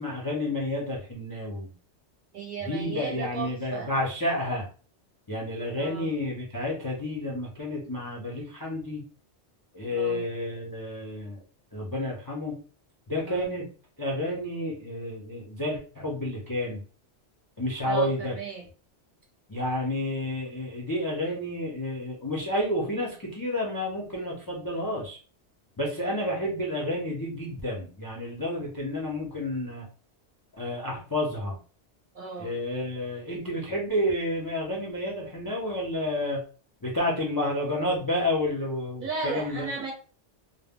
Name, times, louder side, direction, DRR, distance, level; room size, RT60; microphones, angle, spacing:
voice 1, 0.0-1.7 2.6-4.7 5.3-9.0 9.7-11.4 11.7-12.6 13.1-13.7 14.0-16.8 17.6-18.3 19.5-25.2 25.8-29.9 30.6-31.6 32.4-36.4 36.8-39.7, left 1 dB, 35° left, -3 dB, 0.3 m, -30 dB
voice 2, 2.3-3.9 5.7-6.1 9.9-10.2 13.2-13.5 17.9-18.6 32.1-32.6 39.0-39.9, right 5 dB, 55° right, -1 dB, 0.6 m, -35 dB
2.1 x 2.0 x 3.5 m, 0.38 s
omnidirectional pair, 1.2 m